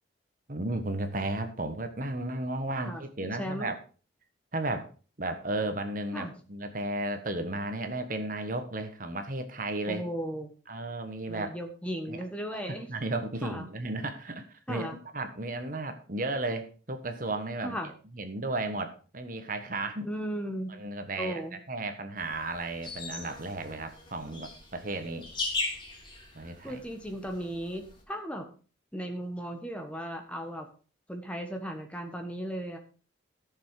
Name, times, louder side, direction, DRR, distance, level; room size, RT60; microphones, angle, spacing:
voice 1, 0.5-3.7 4.5-4.9 5.2-10.0 10.7-11.5 12.1-12.2 12.9-17.8 18.2-20.1 20.8-21.4 21.7-25.3 26.3-26.8, right 2 dB, 45° right, 8 dB, 1.4 m, -34 dB
voice 2, 2.8-3.7 6.1-6.3 9.8-10.5 11.3-12.9 13.4-13.6 14.7-15.0 17.6-17.9 20.0-20.7 21.2-21.6 26.6-28.5 28.9-30.7 31.1-32.8, equal, 5° left, 5 dB, 1.5 m, -36 dB
sound 1, 22.2-28.0, left 3 dB, 25° left, 3.3 m, -39 dB
14.0 x 7.0 x 4.8 m, 0.37 s
head